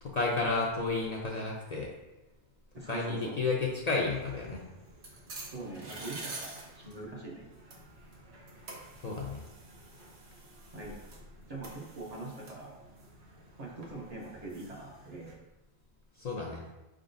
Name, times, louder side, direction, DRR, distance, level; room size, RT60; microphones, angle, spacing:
voice 1, 0.0-1.9 2.9-4.6 9.0-9.4 16.2-16.6, left 3 dB, 50° left, -2 dB, 0.5 m, -31 dB
voice 2, 2.7-3.4 5.5-7.4 10.7-11.0 11.5-12.7 13.6-15.4, right 2 dB, 45° right, -3 dB, 0.7 m, -43 dB
sound 1, 3.8-15.3, right 2 dB, 90° right, 1.1 m, -49 dB
4.5 x 3.7 x 2.6 m, 1.1 s
omnidirectional pair, 1.1 m